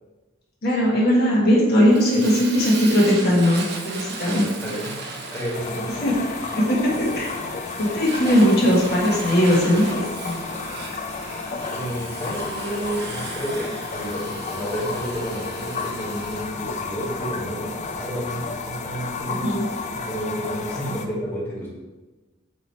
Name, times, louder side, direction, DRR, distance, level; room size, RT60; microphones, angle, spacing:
voice 1, 0.6-4.5 6.0-6.1 6.5-7.3 7.8-10.4 19.4-19.7, equal, 50° left, -4 dB, 1.4 m, -19 dB
Fire, 1.9-16.5, right 3 dB, 55° right, 1.0 m, -37 dB
voice 2, 4.6-6.0 11.6-19.5 19.9-21.7, right 1 dB, 10° left, -7 dB, 1.7 m, -31 dB
sound 1, 5.5-21.1, left 4 dB, 35° left, 0.4 m, -32 dB
7.9 x 3.0 x 4.2 m, 1.2 s
head